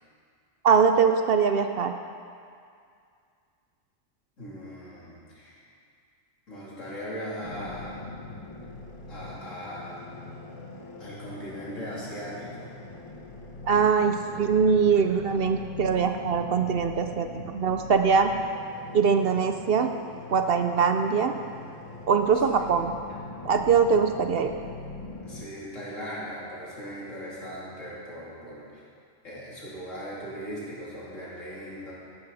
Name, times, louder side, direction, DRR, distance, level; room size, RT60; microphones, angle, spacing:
voice 1, 0.6-1.9 13.6-18.3 18.9-19.9 20.3-21.3 22.1-22.9 23.4-24.5, right 6 dB, 60° right, 6 dB, 0.7 m, -22 dB
voice 2, 4.4-5.6 6.5-8.0 9.1-10.0 11.0-12.7 25.2-28.8 29.2-31.9, equal, 80° left, -7 dB, 3.6 m, -39 dB
sound 1, 7.4-25.4, left 2 dB, 25° left, 1.0 m, -42 dB
13.5 x 12.0 x 4.2 m, 2.3 s
omnidirectional pair, 1.3 m